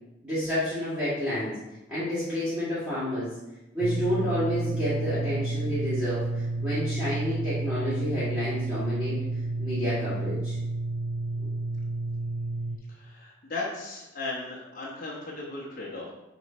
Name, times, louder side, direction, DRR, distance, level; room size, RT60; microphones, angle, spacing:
voice 1, 0.2-1.5 1.9-3.3 3.7-9.2 9.6-10.5 11.4-11.5, equal, 5° right, -14 dB, 2.1 m, -30 dB
sound 1, 3.8-12.8, right 2 dB, 85° right, 0.7 m, -30 dB
voice 2, 12.9-16.1, left 2 dB, 45° left, -6 dB, 1.2 m, -36 dB
6.5 x 3.2 x 4.5 m, 0.96 s
head